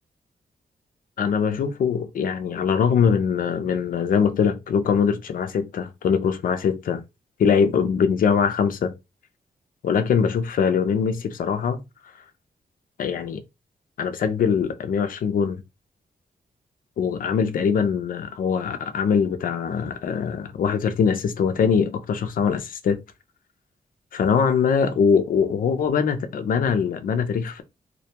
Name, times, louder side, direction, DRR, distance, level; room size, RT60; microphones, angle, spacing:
voice 1, 1.2-7.0 7.4-8.9 9.8-11.8 13.0-13.4 14.0-15.6 17.0-23.0 24.1-27.6, left 6 dB, 65° left, 0.4 m, -22 dB
2.2 x 2.2 x 2.7 m
wide cardioid pair, 145°, 16 cm